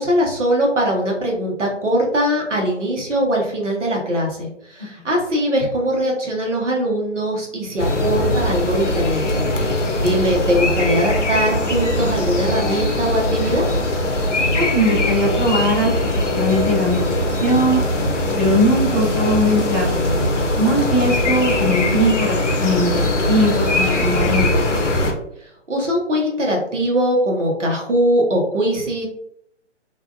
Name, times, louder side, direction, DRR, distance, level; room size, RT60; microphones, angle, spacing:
voice 1, 0.0-13.7 25.4-29.1, equal, 70° right, -1 dB, 1.0 m, -21 dB
sound 1, 7.8-25.1, left 1 dB, 70° left, 0.7 m, -21 dB
voice 2, 14.5-17.8 18.3-19.9 20.5-24.7, equal, 10° left, -13 dB, 0.4 m, -20 dB
2.6 x 2.3 x 2.3 m, 0.73 s
figure-of-eight pair, 135°, 37 cm